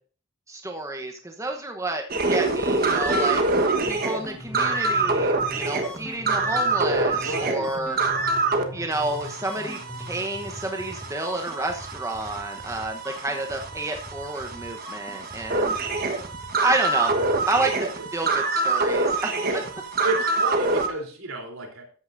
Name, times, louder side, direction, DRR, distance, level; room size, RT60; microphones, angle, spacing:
voice 1, 0.5-2.0 2.3-3.4 3.9-8.0 8.7-16.3 16.6-17.2 17.5-19.6, right 2 dB, 15° right, 3 dB, 1.0 m, -30 dB
sound 1, 2.1-8.6 8.9-20.9, right 3 dB, 45° right, 1.3 m, -26 dB
sound 2, 3.8-17.7, left 1 dB, 5° left, 2.4 m, -41 dB
voice 2, 7.2-7.7 19.4-19.6 20.0-21.8, right 2 dB, 75° right, 2 dB, 3.5 m, -31 dB
13.5 x 9.6 x 2.6 m, 0.41 s
head